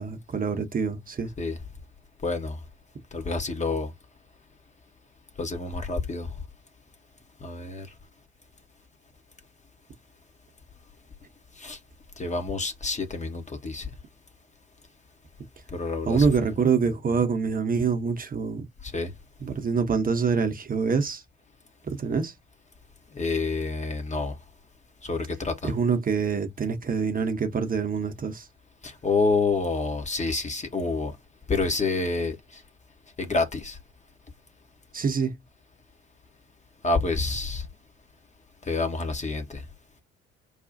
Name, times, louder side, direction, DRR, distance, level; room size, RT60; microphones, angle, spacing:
voice 1, 0.0-1.3 16.0-18.7 19.4-21.2 21.8-22.3 25.6-28.5 34.9-35.4, right 5 dB, 25° right, 0.9 m, -25 dB
voice 2, 2.2-2.6 3.1-3.9 5.4-6.3 7.4-7.9 11.6-11.8 12.2-13.9 15.7-16.5 18.8-19.1 23.1-24.4 25.0-25.7 28.8-31.1 31.5-32.6 33.2-33.8 36.8-37.7 38.7-39.6, left 3 dB, 20° left, 0.9 m, -28 dB
4.8 x 2.3 x 2.6 m
figure-of-eight pair, 50°, 33 cm